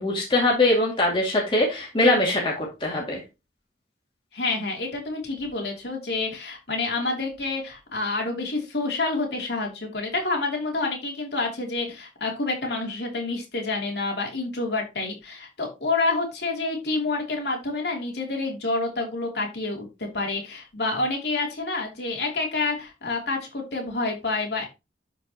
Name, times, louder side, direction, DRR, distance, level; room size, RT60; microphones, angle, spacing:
voice 1, 0.0-3.2, left 2 dB, 30° left, -2 dB, 2.4 m, -22 dB
voice 2, 4.3-24.7, left 3 dB, 70° left, 1 dB, 3.1 m, -28 dB
12.0 x 5.2 x 3.0 m, 0.25 s
head